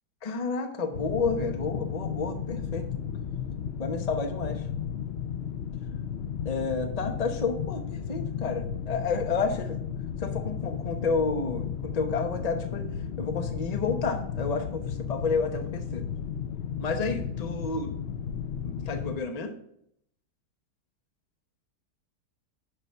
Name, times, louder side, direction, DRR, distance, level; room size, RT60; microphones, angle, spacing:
voice 1, 0.2-2.8 3.8-4.7 6.4-9.7 10.2-12.9 13.2-16.0 16.8-17.9 18.6-19.6, left 4 dB, 25° left, 5 dB, 1.0 m, -30 dB
sound 1, 0.9-19.2, left 8 dB, 60° left, 0.7 m, -34 dB
11.0 x 4.0 x 6.9 m, 0.71 s
omnidirectional pair, 1.7 m